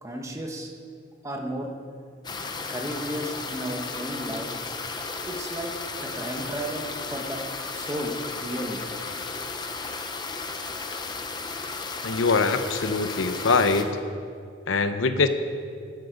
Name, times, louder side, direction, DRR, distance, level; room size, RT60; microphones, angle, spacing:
voice 1, 0.0-0.7 1.2-1.7 2.7-4.6 5.3-7.4 7.7-8.8, right 1 dB, 15° right, 2 dB, 1.2 m, -33 dB
sound 1, 2.2-13.8, left 4 dB, 20° left, 0.8 m, -34 dB
voice 2, 12.0-14.0 14.7-15.3, left 4 dB, 80° left, 9 dB, 0.7 m, -23 dB
12.5 x 12.0 x 5.1 m, 2.3 s
head